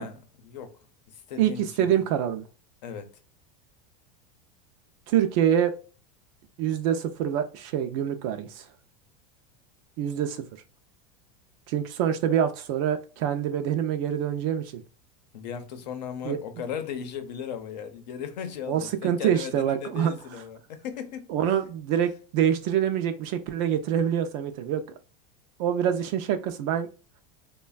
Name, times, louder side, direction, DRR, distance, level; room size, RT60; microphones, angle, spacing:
voice 1, 0.0-1.9 2.8-3.1 15.3-21.3, left 8 dB, 85° left, 0.7 m, -37 dB
voice 2, 1.4-2.5 5.1-5.7 6.6-8.7 10.0-10.5 11.7-14.8 16.3-16.4 18.7-20.1 21.3-24.8 25.6-26.9, right 9 dB, 50° right, 0.4 m, -25 dB
3.2 x 2.2 x 2.2 m
supercardioid pair, 150°, 21 cm